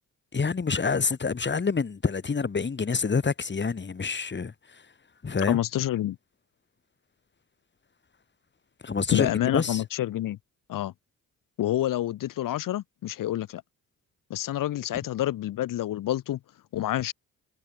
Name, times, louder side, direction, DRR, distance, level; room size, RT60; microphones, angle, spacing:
voice 1, 0.3-4.5 5.2-5.6 8.8-9.8, left 5 dB, 30° left, 1.7 m, -27 dB
voice 2, 5.5-6.2 9.1-10.4 10.7-10.9 11.6-13.6 14.3-16.4 16.7-17.1, left 13 dB, 70° left, 1.2 m, -28 dB
supercardioid pair, 55°, 34 cm